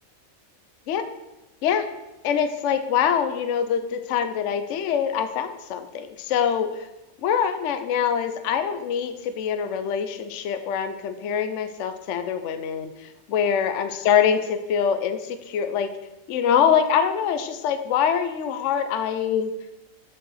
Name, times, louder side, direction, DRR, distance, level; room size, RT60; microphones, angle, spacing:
voice 1, 2.2-6.9 7.2-16.0 16.3-19.5, left 8 dB, 65° left, 9 dB, 0.9 m, -24 dB
6.4 x 4.8 x 6.2 m, 0.96 s
omnidirectional pair, 1.5 m